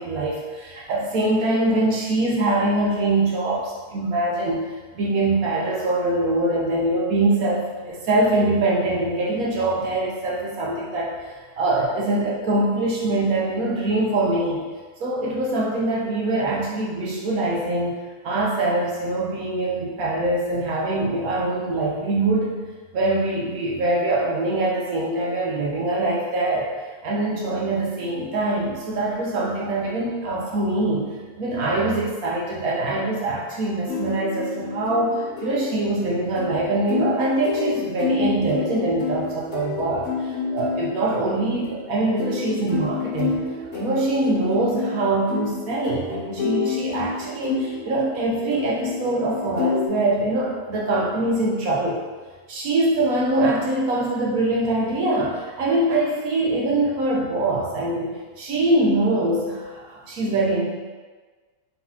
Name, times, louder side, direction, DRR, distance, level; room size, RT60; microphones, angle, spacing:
voice 1, 0.0-4.6 4.9-11.1 11.6-14.6 15.0-22.5 22.9-26.7 27.0-31.1 31.4-43.4 43.7-52.0 52.5-60.7, right 2 dB, 75° right, -4 dB, 1.2 m, -23 dB
sound 1, 33.9-49.9, left 6 dB, 65° left, 0.9 m, -30 dB
4.1 x 4.0 x 2.7 m, 1.4 s
omnidirectional pair, 1.5 m